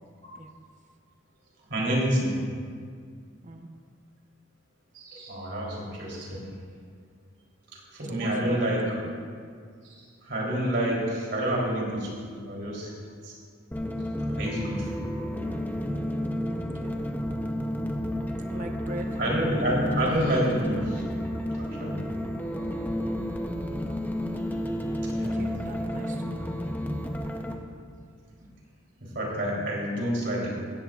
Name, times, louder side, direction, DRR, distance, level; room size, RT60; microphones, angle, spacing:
voice 1, 1.7-2.4 4.9-6.5 7.9-9.0 9.8-12.9 13.2-13.3 14.3-15.1 19.2-21.0 21.5-22.0 25.1-25.4 29.0-30.6, right 1 dB, 60° right, -4 dB, 3.5 m, -28 dB
voice 2, 8.0-8.7 16.5-17.0 18.5-19.1 25.1-26.5, equal, 40° right, 3 dB, 1.0 m, -40 dB
sound 1, 13.7-27.5, equal, 10° left, 0.7 m, -31 dB
16.0 x 15.0 x 2.5 m, 2.1 s
head